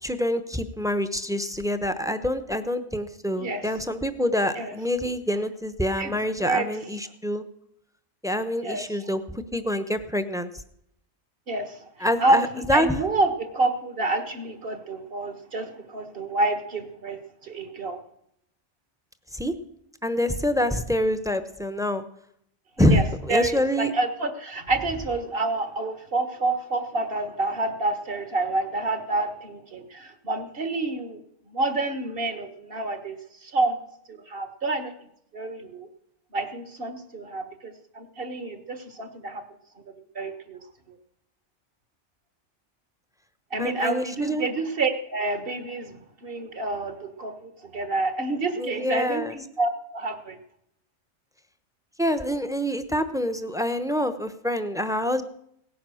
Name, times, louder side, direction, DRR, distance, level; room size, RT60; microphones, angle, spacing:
voice 1, 0.0-7.4 8.2-10.5 12.0-13.0 19.3-19.5 20.0-22.0 22.8-23.9 43.6-44.5 48.6-49.4 52.0-55.2, equal, 5° right, 10 dB, 0.8 m, -26 dB
voice 2, 11.5-17.2 17.4-18.0 22.8-23.0 23.3-31.2 31.5-33.8 34.1-34.9 35.3-35.9 36.3-39.4 40.1-40.6 40.9-41.0 43.5-45.9 46.2-50.4, right 2 dB, 50° right, 8 dB, 1.7 m, -28 dB
17.5 x 10.0 x 6.3 m, 0.72 s
omnidirectional pair, 1.2 m